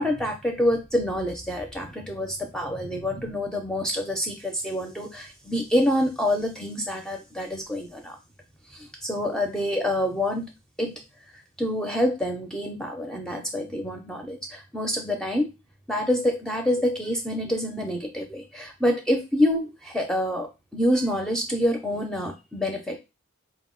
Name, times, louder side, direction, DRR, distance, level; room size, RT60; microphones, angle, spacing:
voice 1, 0.0-8.2 8.7-10.5 10.8-10.9 11.6-15.5 15.9-23.0, left 1 dB, 5° left, 2 dB, 0.4 m, -27 dB
4.4 x 2.1 x 3.6 m, 0.26 s
head